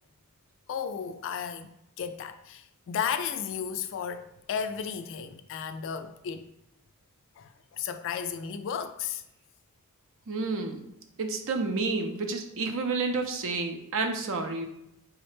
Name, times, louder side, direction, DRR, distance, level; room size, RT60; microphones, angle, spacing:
voice 1, 0.7-6.5 7.4-9.2, left 7 dB, 60° left, 0.3 m, -34 dB
voice 2, 10.3-10.8 11.2-14.7, right 3 dB, 60° right, 0.5 m, -30 dB
4.7 x 2.1 x 3.1 m
head